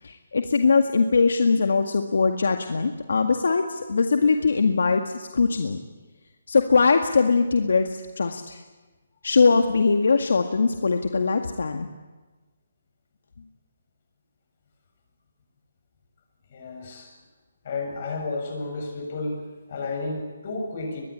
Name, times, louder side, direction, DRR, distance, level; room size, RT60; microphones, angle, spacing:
voice 1, 0.0-5.8 6.5-8.6 9.2-11.9, left 4 dB, 75° left, 6 dB, 1.9 m, -21 dB
voice 2, 16.5-17.1 17.6-21.0, left 3 dB, 40° left, 4 dB, 7.2 m, -32 dB
23.5 x 21.5 x 10.0 m, 1.2 s
hypercardioid pair, 165°, 0 cm